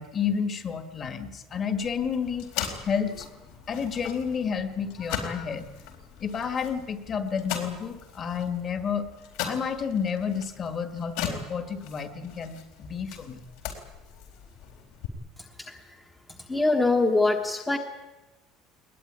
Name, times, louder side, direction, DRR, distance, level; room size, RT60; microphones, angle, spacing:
voice 1, 0.0-2.5 2.8-3.3 3.7-5.7 6.2-9.1 9.4-13.4, left 6 dB, 25° left, 9 dB, 1.8 m, -30 dB
sound 1, 1.8-15.1, left 8 dB, 70° left, 4.1 m, -39 dB
voice 2, 16.5-17.8, left 2 dB, 10° left, 3 dB, 1.2 m, -23 dB
21.0 x 20.5 x 9.7 m, 1.1 s
cardioid pair, 180°, 0 cm